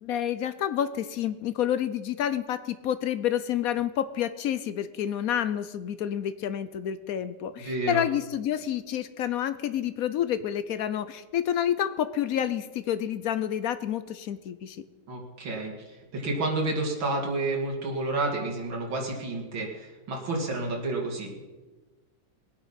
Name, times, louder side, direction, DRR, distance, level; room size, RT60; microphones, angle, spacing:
voice 1, 0.0-14.8, left 10 dB, 70° left, 13 dB, 0.9 m, -29 dB
voice 2, 7.6-8.0 15.1-21.4, right 2 dB, 85° right, -1 dB, 3.1 m, -30 dB
20.0 x 8.8 x 5.7 m, 1.3 s
omnidirectional pair, 2.1 m